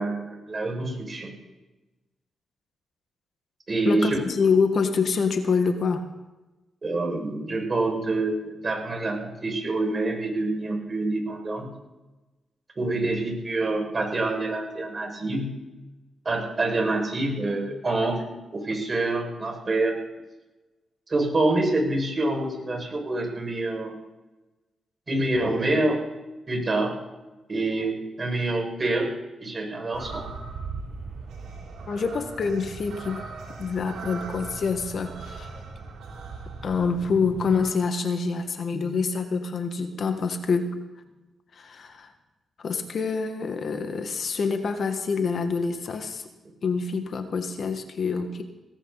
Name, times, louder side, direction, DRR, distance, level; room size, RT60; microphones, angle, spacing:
voice 1, 0.0-1.3 3.7-4.2 6.8-11.7 12.8-15.5 16.2-18.2 18.5-20.0 21.1-23.9 25.1-26.0 26.5-27.0 27.5-29.1 29.4-30.3, right 2 dB, 40° right, 2 dB, 6.1 m, -26 dB
voice 2, 3.9-6.1 31.9-33.2 33.6-35.5 36.6-40.7 41.6-42.1 42.6-46.2 46.6-48.4, left 5 dB, 60° left, 7 dB, 1.7 m, -26 dB
sound 1, 29.9-37.6, right 4 dB, 80° right, 5.3 m, -39 dB
18.5 x 16.5 x 4.2 m, 1.1 s
supercardioid pair, 45°, 0 cm